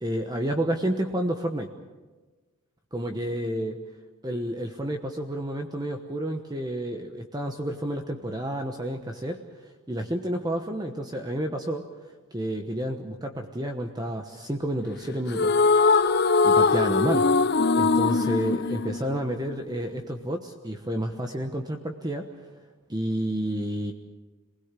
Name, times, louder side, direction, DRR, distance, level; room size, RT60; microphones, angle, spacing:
voice 1, 0.0-1.7 2.9-3.8 4.2-11.8 12.3-15.5 16.4-17.4 17.7-22.5 22.9-23.9, right 1 dB, 20° right, 4 dB, 1.1 m, -30 dB
sound 1, 15.3-19.7, left 4 dB, 50° left, 0.7 m, -21 dB
27.0 x 20.0 x 7.5 m, 1.3 s
head